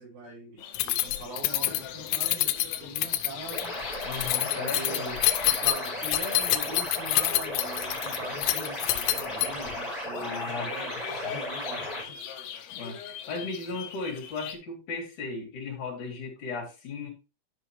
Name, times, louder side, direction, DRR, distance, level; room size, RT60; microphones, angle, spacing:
voice 1, 0.0-3.7 4.5-5.2 5.4-12.0, right 2 dB, 80° right, -4 dB, 6.5 m, -42 dB
sound 1, 0.6-14.5, left 9 dB, 70° left, 2.9 m, -42 dB
Keys jangling, 0.7-9.8, left 16 dB, 90° left, 3.2 m, -27 dB
sound 2, 3.5-12.0, left 1 dB, ahead, 3.5 m, -35 dB
voice 2, 4.0-5.3 10.1-10.8 12.7-13.0 13.3-17.1, left 4 dB, 45° left, 0 dB, 3.8 m, -36 dB
12.0 x 5.6 x 3.2 m, 0.29 s
omnidirectional pair, 5.5 m